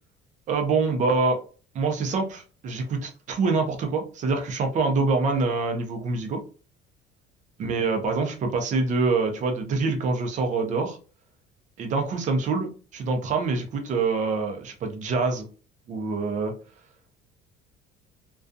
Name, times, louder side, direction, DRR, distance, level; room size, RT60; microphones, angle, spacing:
voice 1, 0.5-1.4 1.7-6.4 7.6-11.0 11.8-15.5 15.9-16.5, right 4 dB, 40° right, 4 dB, 0.6 m, -25 dB
2.4 x 2.3 x 2.5 m, 0.38 s
cardioid pair, 140°, 20 cm